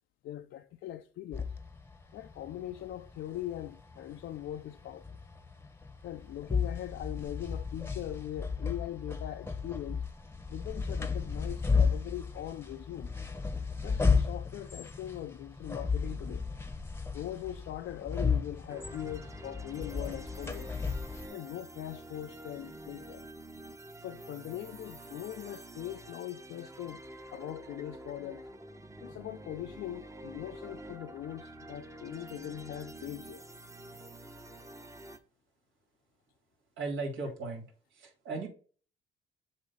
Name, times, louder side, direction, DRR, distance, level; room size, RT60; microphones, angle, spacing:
voice 1, 0.2-1.5 2.1-5.0 6.0-10.0 10.5-13.1 13.8-16.4 17.1-20.7 21.3-23.3 24.0-27.0 27.3-28.4 29.0-33.4, left 12 dB, 75° left, 0.5 m, -41 dB
sound 1, 1.3-21.3, left 5 dB, 10° left, 0.9 m, -34 dB
sound 2, 18.7-35.2, right 1 dB, 15° right, 0.9 m, -48 dB
voice 2, 36.8-37.7 37.9-38.5, right 3 dB, 75° right, 2.9 m, -36 dB
7.4 x 2.8 x 5.6 m
cardioid pair, 90°, 20 cm